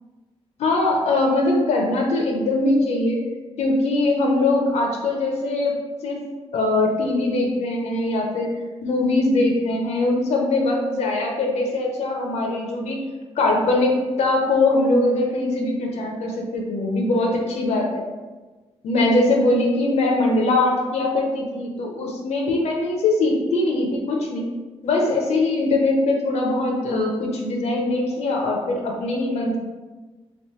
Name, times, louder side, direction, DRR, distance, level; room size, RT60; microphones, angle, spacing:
voice 1, 0.6-3.2 3.6-5.8 6.0-6.2 6.5-13.0 13.4-18.0 18.8-24.5 24.8-29.6, left 2 dB, 80° left, 0 dB, 0.8 m, -21 dB
3.6 x 3.2 x 3.1 m, 1.3 s
wide cardioid pair, 180°, 11 cm